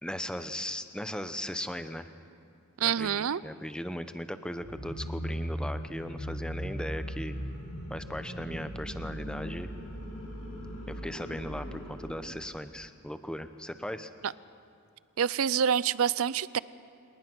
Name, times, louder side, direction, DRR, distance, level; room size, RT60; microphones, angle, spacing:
voice 1, 0.0-2.1 2.8-7.4 7.9-9.7 10.9-14.1, equal, 5° left, 10 dB, 0.8 m, -38 dB
voice 2, 2.8-3.4 15.2-16.6, right 8 dB, 65° right, 19 dB, 0.5 m, -27 dB
sound 1, 4.6-12.3, equal, 70° left, 6.8 m, -38 dB
28.0 x 19.5 x 6.1 m, 2.5 s
head